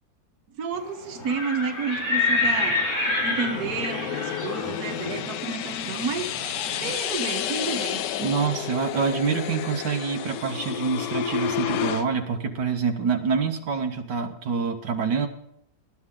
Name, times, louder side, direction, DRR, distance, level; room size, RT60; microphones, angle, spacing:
voice 1, 0.6-2.8 3.2-6.3 6.8-8.1, right 5 dB, 65° right, 6 dB, 1.7 m, -30 dB
Livestock farm animals working animals, 1.1-6.9, left 3 dB, 60° left, 6.0 m, -28 dB
sound 1, 1.9-12.0, left 10 dB, 85° left, 1.3 m, -31 dB
voice 2, 8.2-15.3, right 5 dB, 85° right, 5 dB, 1.7 m, -26 dB
19.0 x 11.0 x 3.7 m, 0.76 s
omnidirectional pair, 1.8 m